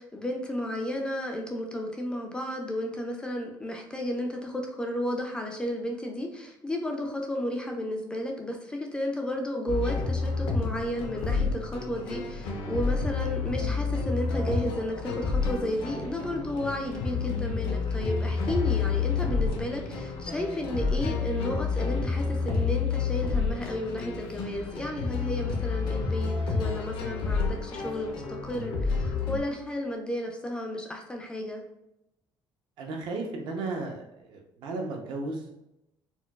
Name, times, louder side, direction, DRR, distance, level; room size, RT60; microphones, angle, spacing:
voice 1, 0.0-31.6, equal, 10° left, 2 dB, 0.3 m, -33 dB
sound 1, 9.7-29.4, left 4 dB, 85° left, 0.6 m, -29 dB
voice 2, 32.8-35.7, right 3 dB, 70° right, 1 dB, 0.7 m, -35 dB
4.3 x 2.2 x 2.3 m, 0.87 s
cardioid pair, 170°, 8 cm